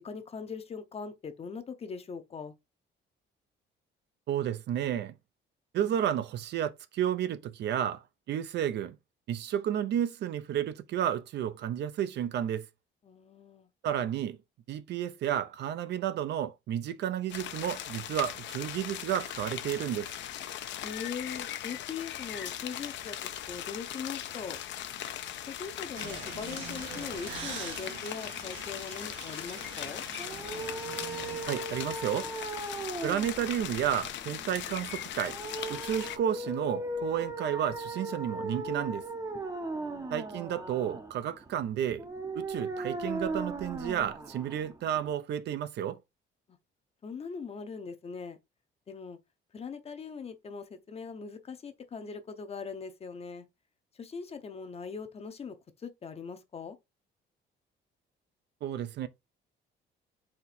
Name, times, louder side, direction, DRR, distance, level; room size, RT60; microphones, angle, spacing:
voice 1, 0.0-2.5 13.0-13.7 20.8-24.6 25.4-30.0 39.7-40.2 47.0-48.4 48.9-49.2 49.5-53.5 54.0-55.5 55.8-56.8, left 5 dB, 30° left, 0.7 m, -41 dB
voice 2, 4.3-5.1 5.7-8.0 8.3-9.0 9.3-12.7 13.8-14.4 14.7-20.1 31.5-32.3 33.0-35.4 35.7-39.0 40.1-42.1 42.3-46.0 58.6-59.1, right 10 dB, 60° right, 0.5 m, -31 dB
sound 1, 17.3-36.2, left 11 dB, 70° left, 0.6 m, -39 dB
sound 2, 25.9-31.4, right 6 dB, 85° right, 1.2 m, -44 dB
sound 3, 30.1-45.1, right 2 dB, 15° right, 0.6 m, -38 dB
4.4 x 2.7 x 4.1 m
cardioid pair, 140°, 20 cm